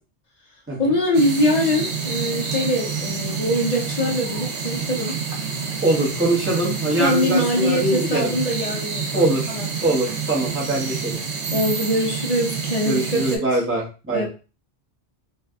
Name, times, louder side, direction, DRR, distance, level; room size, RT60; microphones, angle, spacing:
voice 1, 0.8-5.2 7.0-9.7 11.5-13.6 14.1-14.3, left 1 dB, 45° left, -1 dB, 0.6 m, -23 dB
sound 1, 1.1-13.4, right 5 dB, 85° right, 1.0 m, -28 dB
voice 2, 5.8-8.3 9.1-9.5 9.8-11.2 12.8-14.3, right 2 dB, 10° right, -4 dB, 0.9 m, -23 dB
2.6 x 2.4 x 3.4 m, 0.33 s
omnidirectional pair, 1.1 m